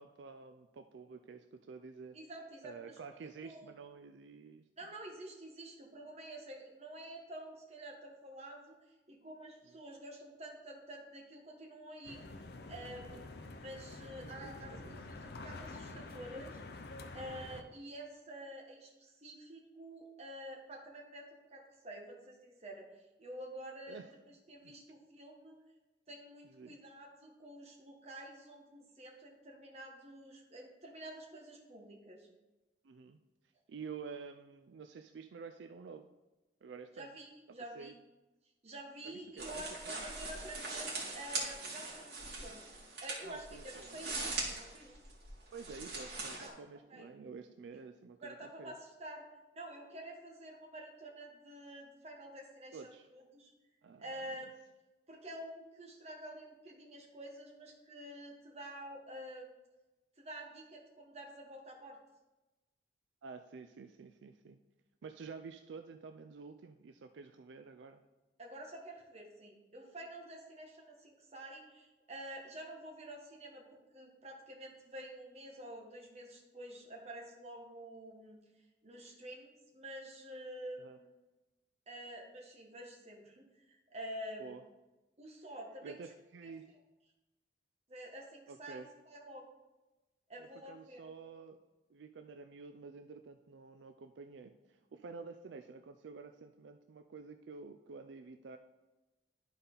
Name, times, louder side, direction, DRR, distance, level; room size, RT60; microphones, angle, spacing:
voice 1, 0.0-2.2 2.6-4.6 13.1-13.2 14.4-15.1 23.9-24.2 24.6-24.7 26.4-26.8 32.8-33.2 33.7-36.1 36.6-37.1 37.5-37.9 39.0-40.1 43.2-44.0 45.5-48.7 52.7-53.1 53.8-54.4 63.2-64.6 65.0-68.0 80.8-81.0 84.4-84.6 85.8-86.8 88.5-88.9 90.4-91.6 91.9-98.6, right 5 dB, 80° right, 7 dB, 0.4 m, -50 dB
voice 2, 2.1-3.7 4.8-8.8 9.1-16.6 17.1-24.0 24.3-25.6 26.1-32.3 36.9-37.9 38.6-42.6 43.0-44.9 46.4-46.6 46.9-47.1 48.2-49.3 49.5-53.5 54.0-54.5 55.1-59.5 60.2-62.0 68.4-78.4 78.8-81.1 81.9-84.6 85.2-85.9 86.4-86.5 87.9-89.5 90.3-91.0, right 1 dB, 35° right, 0 dB, 1.4 m, -49 dB
sound 1, 12.0-17.6, left 2 dB, 60° left, 0.6 m, -48 dB
sound 2, 39.4-46.5, right 3 dB, 65° right, 2.2 m, -41 dB
11.5 x 4.1 x 3.9 m, 1.1 s
head